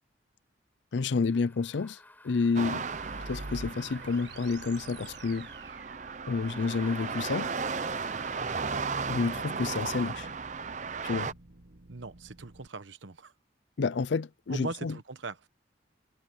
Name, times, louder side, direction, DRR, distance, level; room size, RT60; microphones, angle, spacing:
voice 1, 0.9-2.9 3.3-5.5 6.3-7.5 9.1-10.3 11.0-11.3 13.8-15.0, left 4 dB, 75° left, 0.5 m, -29 dB
sound 1, 1.2-5.8 6.4-8.8, left 2 dB, 10° left, 6.7 m, -52 dB
sound 2, 2.6-11.3, right 5 dB, 40° right, 0.6 m, -35 dB
sound 3, 2.7-12.7, right 2 dB, 70° right, 1.4 m, -49 dB
voice 2, 11.9-13.3 14.5-15.5, right 3 dB, 90° right, 1.1 m, -40 dB
head